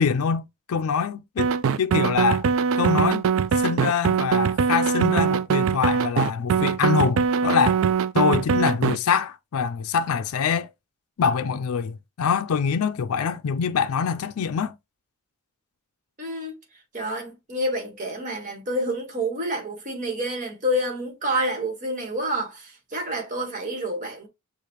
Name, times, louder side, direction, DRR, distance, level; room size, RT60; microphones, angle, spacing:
voice 1, 0.0-1.5 1.8-2.5 2.8-3.2 3.5-7.8 8.1-10.7 11.2-14.7, left 6 dB, 75° left, 0.4 m, -24 dB
sound 1, 1.4-9.0, right 6 dB, 65° right, 0.3 m, -22 dB
voice 2, 16.2-16.6 16.9-24.3, equal, 35° right, 1.4 m, -28 dB
6.6 x 2.4 x 2.9 m
head